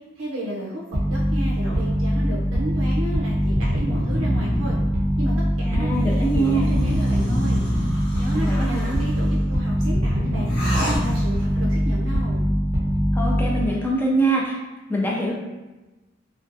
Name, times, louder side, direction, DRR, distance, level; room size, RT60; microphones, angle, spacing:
voice 1, 0.2-0.8 1.1-4.8 5.2-7.6 8.2-10.5 10.8-12.5, right 1 dB, 85° right, -4 dB, 0.5 m, -32 dB
sound 1, 0.9-13.8, equal, 35° right, 0.6 m, -22 dB
voice 2, 5.6-6.7 8.3-9.0 13.1-14.6 14.9-15.3, right 2 dB, 10° left, -3 dB, 0.3 m, -24 dB
sound 2, 5.9-9.4 10.5-11.5, equal, 80° left, 1.0 m, -35 dB
2.5 x 2.2 x 2.5 m, 1.1 s
head